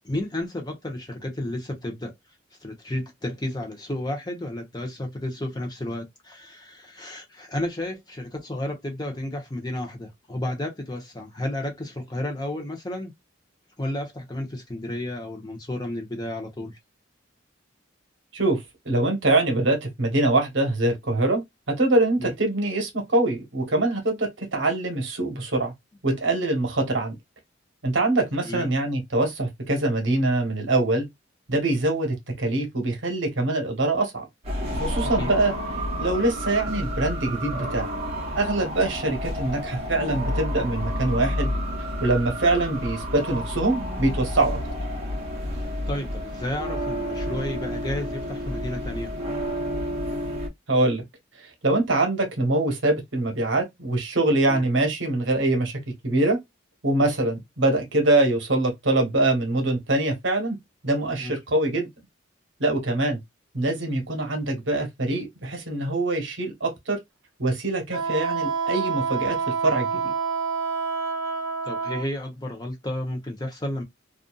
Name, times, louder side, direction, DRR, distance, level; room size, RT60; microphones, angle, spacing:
voice 1, 0.0-2.1 2.6-13.1 13.8-16.8 22.2-22.3 28.4-28.7 35.0-35.3 45.6-49.1 54.4-54.6 61.2-61.4 71.6-73.8, left 1 dB, 20° left, 0.8 m, -32 dB
voice 2, 18.8-21.4 21.7-25.7 26.0-27.1 27.8-31.0 31.5-34.3 34.7-35.5 36.0-37.9 38.4-41.5 42.0-44.6 50.7-51.0 51.6-56.4 56.8-60.6 60.8-61.9 62.6-63.2 63.5-67.0 67.4-69.4 69.6-70.1, right 2 dB, 65° right, 1.1 m, -24 dB
sound 1, 34.4-50.5, equal, 30° right, 0.9 m, -30 dB
Wind instrument woodwind instrument, 67.9-72.1, right 5 dB, 90° right, 0.6 m, -27 dB
2.6 x 2.4 x 2.3 m
head